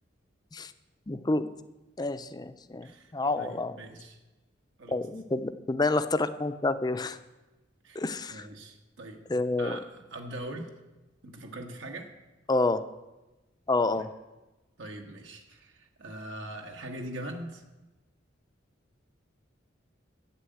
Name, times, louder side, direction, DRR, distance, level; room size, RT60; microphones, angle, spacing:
voice 1, 1.1-1.5 2.0-3.8 4.9-7.2 7.9-8.5 9.3-9.8 12.5-12.8 13.7-14.1, left 2 dB, 20° left, 11 dB, 0.5 m, -28 dB
voice 2, 3.4-4.2 4.8-5.1 7.8-8.0 8.3-9.2 9.6-10.7 11.2-12.1 14.8-17.6, right 1 dB, 75° right, 3 dB, 1.4 m, -41 dB
11.5 x 8.8 x 7.8 m, 1.1 s
head